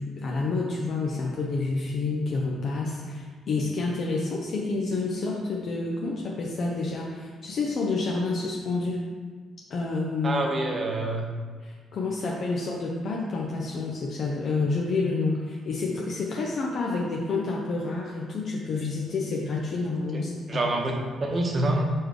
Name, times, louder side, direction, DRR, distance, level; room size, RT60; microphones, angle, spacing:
voice 1, 0.0-9.0 9.7-10.4 11.6-20.7, left 3 dB, 60° left, -2 dB, 0.7 m, -29 dB
voice 2, 10.2-11.3 20.1-20.2 20.5-21.8, right 2 dB, 40° right, 1 dB, 1.1 m, -26 dB
4.6 x 4.5 x 4.8 m, 1.5 s
cardioid pair, 90°, 0 cm